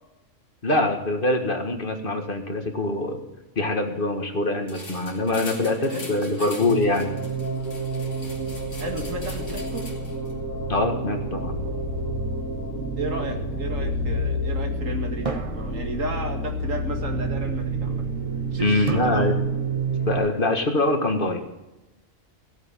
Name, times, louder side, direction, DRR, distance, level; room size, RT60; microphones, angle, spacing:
voice 1, 0.6-3.2 3.6-7.2 10.7-11.6 18.6-19.4 20.1-21.4, left 2 dB, 45° left, 4 dB, 1.9 m, -24 dB
sound 1, 4.7-10.3, left 2 dB, 65° left, 3.1 m, -42 dB
voice 2, 5.6-6.5 8.8-9.9 13.0-18.1 18.5-19.4, right 2 dB, 85° right, 4 dB, 2.3 m, -33 dB
sound 2, 6.6-20.2, right 2 dB, 85° left, 3.6 m, -29 dB
sound 3, 11.6-13.2 15.3-16.6 18.9-20.0, right 3 dB, 30° right, 1.0 m, -38 dB
16.0 x 8.3 x 7.2 m, 0.99 s
omnidirectional pair, 1.3 m